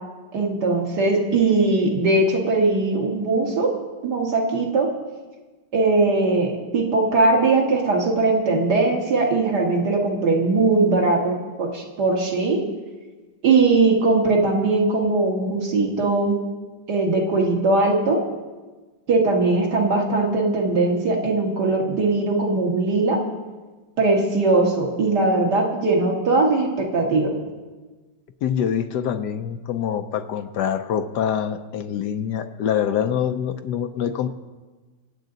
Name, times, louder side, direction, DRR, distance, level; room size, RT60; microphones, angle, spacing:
voice 1, 0.3-3.7 4.0-4.9 5.7-12.6 13.4-16.4 16.9-18.2 19.1-23.2 24.0-27.3, right 3 dB, 60° right, -1 dB, 2.4 m, -20 dB
voice 2, 28.4-34.3, left 9 dB, 70° left, 8 dB, 1.2 m, -25 dB
25.0 x 8.4 x 4.0 m, 1.3 s
omnidirectional pair, 2.0 m